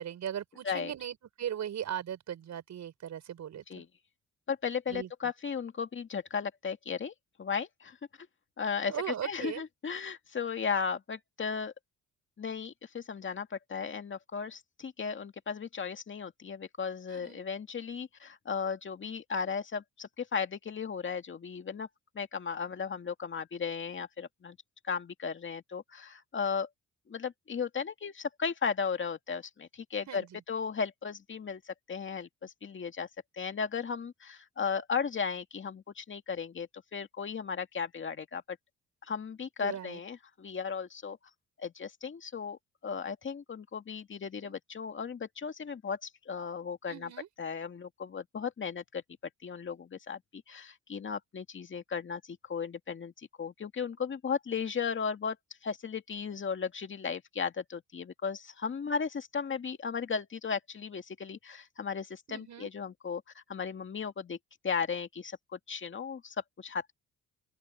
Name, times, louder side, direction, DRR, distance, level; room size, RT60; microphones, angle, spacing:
voice 1, 0.0-3.8 4.9-5.1 8.9-9.6 17.1-17.4 30.1-30.4 39.6-40.0 44.4-44.5 46.9-47.3 62.3-62.7, right 10 dB, 65° right, 6.5 m, -38 dB
voice 2, 4.5-7.1 7.4-8.0 8.6-11.7 12.4-21.9 22.1-24.6 24.8-26.7 27.1-33.1 33.3-38.6 39.0-41.2 41.6-47.1 47.4-49.0 49.4-55.4 55.6-64.4 64.6-66.9, left 6 dB, 40° left, 2.2 m, -36 dB
open air
cardioid pair, 90°, 30 cm